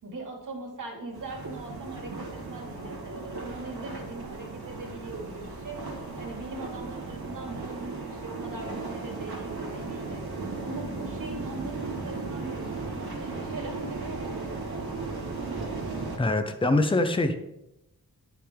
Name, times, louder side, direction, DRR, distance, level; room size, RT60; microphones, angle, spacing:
voice 1, 0.0-5.8 6.2-10.2 10.6-14.8, right 2 dB, 55° right, 0 dB, 2.5 m, -40 dB
sound 1, 1.1-16.2, right 3 dB, 75° right, 2.1 m, -36 dB
voice 2, 16.2-17.5, left 2 dB, 15° left, 7 dB, 0.7 m, -24 dB
9.7 x 5.9 x 3.7 m, 0.88 s
wide cardioid pair, 115°, 37 cm